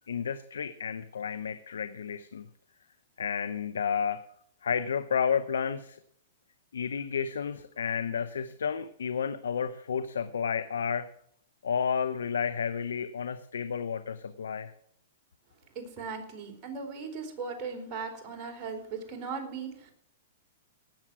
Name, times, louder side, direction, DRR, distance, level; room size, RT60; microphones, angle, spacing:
voice 1, 0.1-2.5 3.2-4.2 4.6-6.0 6.7-11.1 11.6-14.7, left 7 dB, 90° left, 12 dB, 0.8 m, -31 dB
voice 2, 15.7-19.9, right 5 dB, 30° right, 1 dB, 4.2 m, -38 dB
18.0 x 7.3 x 6.1 m, 0.69 s
hypercardioid pair, 130°, 0 cm